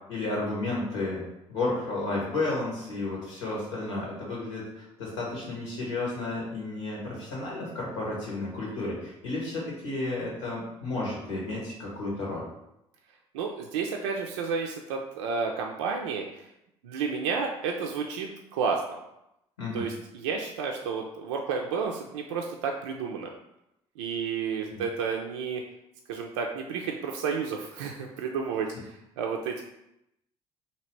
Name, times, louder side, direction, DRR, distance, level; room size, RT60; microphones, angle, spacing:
voice 1, 0.1-1.2 1.5-12.5 19.6-19.8 24.7-24.8, left 2 dB, 85° left, -4 dB, 1.3 m, -32 dB
voice 2, 13.3-16.4 16.8-19.0 19.7-23.3 24.0-25.6 26.1-29.6, right 5 dB, 80° right, 1 dB, 0.4 m, -31 dB
2.9 x 2.8 x 4.4 m, 0.85 s
hypercardioid pair, 55°, 15 cm